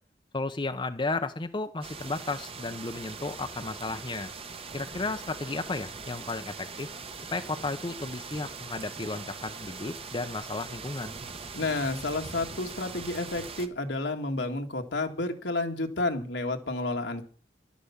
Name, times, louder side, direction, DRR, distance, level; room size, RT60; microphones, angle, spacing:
voice 1, 0.3-4.3 4.7-6.9 7.3-11.1, left 3 dB, 30° left, 8 dB, 0.7 m, -33 dB
sound 1, 1.8-13.7, right 4 dB, 35° right, 1.1 m, -41 dB
voice 2, 11.5-17.2, left 2 dB, 80° left, 4 dB, 1.9 m, -30 dB
12.0 x 10.0 x 7.2 m, 0.44 s
head